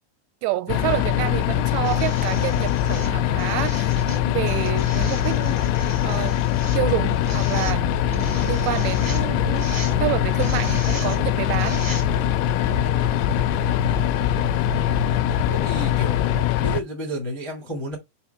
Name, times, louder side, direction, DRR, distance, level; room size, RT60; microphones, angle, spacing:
voice 1, 0.4-6.4 6.7-11.8, right 15 dB, 85° right, 2.7 m, -29 dB
sound 1, 0.7-16.8, left 11 dB, 85° left, 2.6 m, -22 dB
sound 2, 1.8-12.4 13.4-13.5, right 2 dB, 15° right, 0.6 m, -39 dB
sound 3, 7.8-16.6, right 5 dB, 60° right, 2.1 m, -36 dB
voice 2, 13.9-14.4 15.5-16.3 16.6-18.0, right 1 dB, 40° left, 0.3 m, -32 dB
6.7 x 2.9 x 5.6 m
omnidirectional pair, 4.9 m